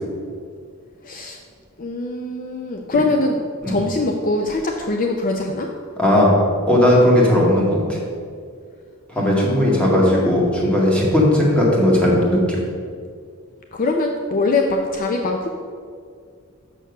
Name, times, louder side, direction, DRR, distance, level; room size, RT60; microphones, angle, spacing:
voice 1, 1.0-1.4 1.8-3.4 3.7-5.7 9.2-10.1 13.7-15.5, left 2 dB, 40° left, 3 dB, 0.5 m, -23 dB
voice 2, 6.0-6.3 6.7-8.0 9.1-12.6, left 1 dB, 5° left, -5 dB, 2.0 m, -16 dB
6.6 x 6.3 x 6.5 m, 2.1 s
head